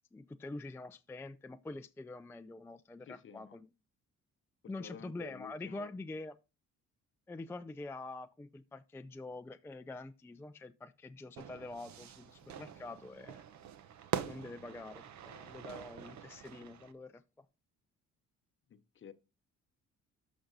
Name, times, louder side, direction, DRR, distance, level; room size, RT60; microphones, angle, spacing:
voice 1, 0.1-3.7 4.7-6.3 7.3-13.4 14.2-17.5, left 2 dB, 10° left, 0.3 m, -46 dB
voice 2, 3.0-3.6 4.6-5.9 18.7-19.1, left 7 dB, 40° left, 0.7 m, -51 dB
Fire / Fireworks, 11.4-16.9, right 9 dB, 70° right, 0.8 m, -44 dB
13.0 x 5.1 x 2.6 m
cardioid pair, 90°, 30 cm